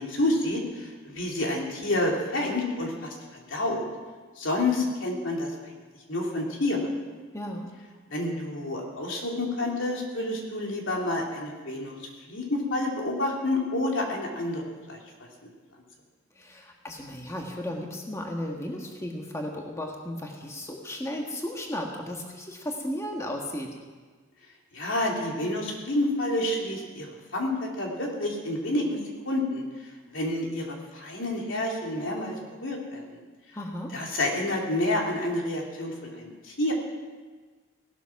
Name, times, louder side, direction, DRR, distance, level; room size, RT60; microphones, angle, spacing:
voice 1, 0.0-3.8 4.4-5.5 6.1-6.9 8.1-12.0 12.3-15.0 24.7-27.1 27.3-29.0 29.2-29.6 30.1-33.0 33.9-36.7, left 1 dB, 75° left, -1 dB, 3.0 m, -29 dB
voice 2, 7.3-7.7 16.3-23.7 33.5-33.9, left 1 dB, 15° left, 1 dB, 1.5 m, -35 dB
17.5 x 12.5 x 5.9 m, 1.4 s
head